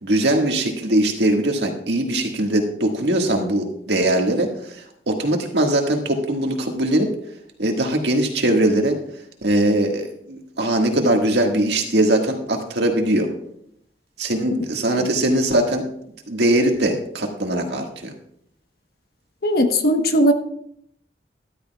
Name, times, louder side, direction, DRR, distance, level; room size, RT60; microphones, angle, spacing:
voice 1, 0.0-7.1 7.6-9.0 9.4-13.3 14.2-15.8 16.3-18.1, right 1 dB, 80° right, 2 dB, 1.7 m, -21 dB
voice 2, 19.4-20.3, equal, 60° left, 6 dB, 1.1 m, -17 dB
13.5 x 12.0 x 2.3 m, 0.69 s
head